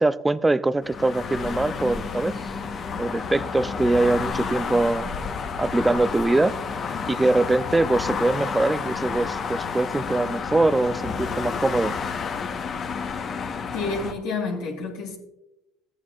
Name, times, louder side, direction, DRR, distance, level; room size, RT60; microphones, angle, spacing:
voice 1, 0.0-2.5 3.0-5.1 5.6-6.6 7.1-11.9, right 2 dB, 15° right, 0.4 m, -23 dB
sound 1, 0.8-14.1, left 5 dB, 45° left, 1.1 m, -30 dB
voice 2, 13.7-15.2, left 3 dB, 75° left, 2.4 m, -29 dB
14.5 x 9.6 x 2.4 m
hypercardioid pair, 75°, 0 cm